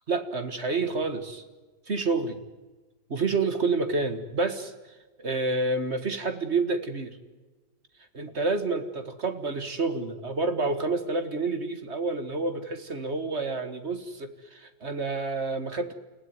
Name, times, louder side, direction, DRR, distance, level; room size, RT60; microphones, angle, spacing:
voice 1, 0.1-1.4 1.9-2.4 3.1-4.7 5.2-7.2 8.1-15.9, right 3 dB, 35° right, 9 dB, 1.8 m, -29 dB
29.5 x 16.0 x 9.5 m, 1.2 s
omnidirectional pair, 2.0 m